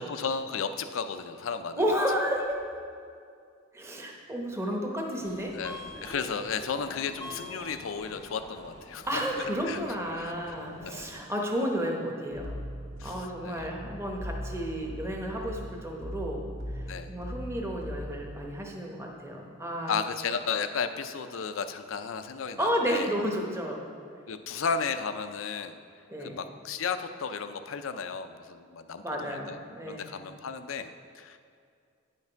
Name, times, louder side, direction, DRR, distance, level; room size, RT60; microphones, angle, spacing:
voice 1, 0.0-1.8 5.5-9.1 9.7-10.3 10.8-11.1 13.0-13.7 16.9-17.1 19.9-23.1 24.3-25.8 26.2-29.6 29.9-31.4, left 6 dB, 80° left, 10 dB, 0.5 m, -34 dB
voice 2, 1.8-2.8 3.7-5.5 9.1-12.6 13.0-16.4 16.7-20.0 22.6-23.8 26.1-26.4 29.0-30.1, equal, 15° right, 0 dB, 0.9 m, -32 dB
Subway metro underground, 5.2-11.3, left 1 dB, 15° left, 0.7 m, -46 dB
sound 1, 12.3-18.4, equal, 80° right, 1.2 m, -39 dB
9.8 x 5.8 x 4.5 m, 2.3 s
head